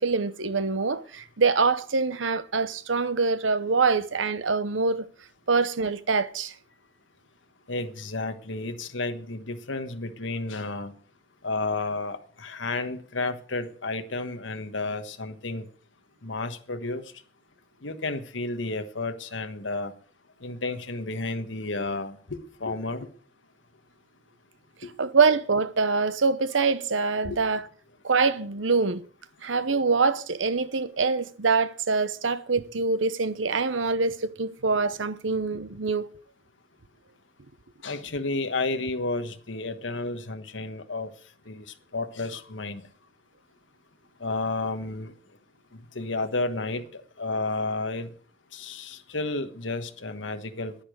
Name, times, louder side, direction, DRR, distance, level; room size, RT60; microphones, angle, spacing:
voice 1, 0.0-5.1 5.5-6.5 25.0-27.6 28.0-29.0 29.4-36.0, right 4 dB, 80° right, 0.9 m, -24 dB
voice 2, 7.7-10.9 11.4-15.7 16.2-17.1 17.8-19.9 20.4-23.1 24.8-24.9 27.2-27.4 37.8-41.1 41.4-42.9 44.2-45.1 45.7-48.1 48.5-50.8, left 3 dB, 75° left, 1.4 m, -32 dB
10.5 x 10.0 x 6.4 m
head